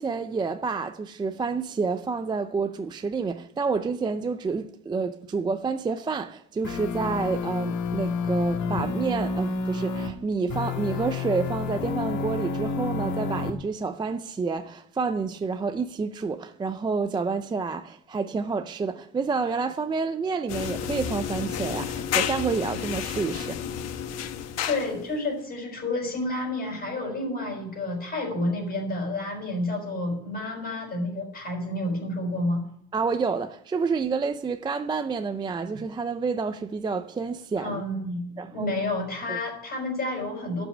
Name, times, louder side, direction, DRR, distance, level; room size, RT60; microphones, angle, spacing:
voice 1, 0.0-23.6 32.9-37.8 38.4-38.7 39.3-39.4, right 4 dB, 15° right, 0.4 m, -29 dB
sound 1, 6.6-10.1 10.5-13.5, left 4 dB, 90° left, 1.7 m, -29 dB
sound 2, 20.5-25.1, left 9 dB, 60° left, 1.2 m, -31 dB
voice 2, 24.6-32.6 37.6-40.6, left 2 dB, 35° left, 5.2 m, -30 dB
12.0 x 6.2 x 9.1 m
cardioid pair, 155°, 30 cm